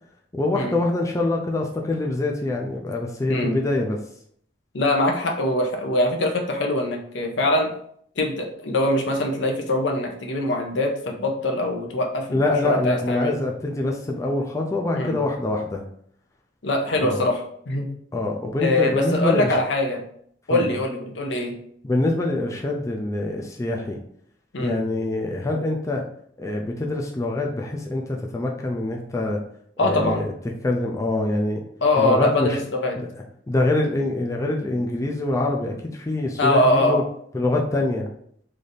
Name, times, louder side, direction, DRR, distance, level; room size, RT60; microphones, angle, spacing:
voice 1, 0.3-4.0 12.3-15.8 17.0-17.2 18.1-19.6 20.5-20.7 21.8-24.0 24.6-26.0 26.4-29.4 29.8-30.3 30.6-31.6 31.9-32.6 33.0-33.1 33.5-37.0 37.3-38.1, left 2 dB, 15° left, 0 dB, 0.4 m, -25 dB
voice 2, 4.7-7.7 8.2-13.4 14.9-15.2 16.6-17.9 18.6-20.0 20.5-21.5 24.5-24.8 29.8-30.2 31.8-33.0 36.4-37.0, left 1 dB, 75° left, 2 dB, 0.7 m, -23 dB
3.3 x 2.6 x 4.0 m, 0.65 s
head